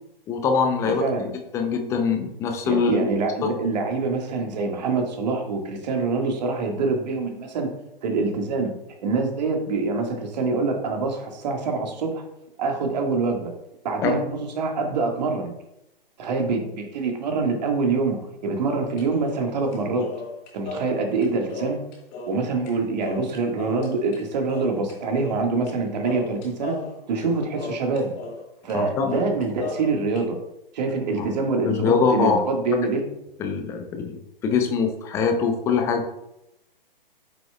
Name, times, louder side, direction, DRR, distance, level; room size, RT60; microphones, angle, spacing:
voice 1, 0.3-1.0 1.5-3.1 3.4-3.5 14.0-14.2 28.7-29.1 31.2-31.3 31.6-32.4 33.4-36.1, left 5 dB, 10° left, 5 dB, 0.5 m, -23 dB
voice 2, 2.6-7.7 8.0-8.7 9.0-12.2 12.6-13.5 13.8-15.5 16.2-20.1 20.5-21.8 22.3-26.8 27.1-28.1 28.6-30.4 30.7-33.0, right 3 dB, 45° right, 3 dB, 1.6 m, -25 dB
sound 1, 18.6-22.7 23.0-24.2 24.5-25.8 26.0-28.4 28.7-28.8 29.1-30.2, left 3 dB, 25° left, 1.5 m, -36 dB
8.7 x 6.1 x 2.2 m, 0.86 s
figure-of-eight pair, 130°, 29 cm